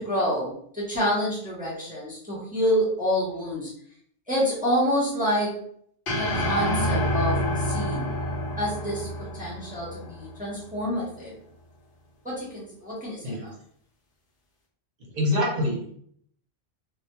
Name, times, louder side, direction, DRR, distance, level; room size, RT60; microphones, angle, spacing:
voice 1, 0.0-3.7 4.3-5.6 6.2-8.2 8.6-11.4 12.2-13.5, equal, 10° right, -6 dB, 0.5 m, -28 dB
sound 1, 6.1-10.4, equal, 60° left, 0.8 m, -27 dB
voice 2, 15.1-15.9, left 1 dB, 50° right, -2 dB, 0.7 m, -25 dB
2.1 x 2.0 x 2.8 m, 0.64 s
omnidirectional pair, 1.2 m